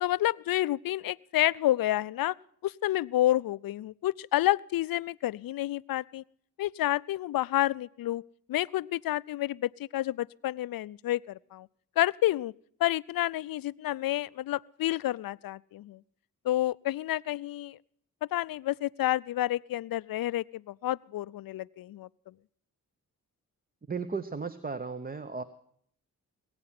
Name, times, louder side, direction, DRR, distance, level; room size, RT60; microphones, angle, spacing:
voice 1, 0.0-2.3 2.6-6.2 6.6-8.2 8.5-11.7 12.0-12.5 12.8-16.0 16.4-17.8 18.3-22.1, left 14 dB, 65° left, 19 dB, 0.5 m, -29 dB
voice 2, 23.9-25.4, right 4 dB, 25° right, 11 dB, 0.9 m, -35 dB
20.0 x 8.9 x 5.9 m, 0.64 s
supercardioid pair, 40°, 38 cm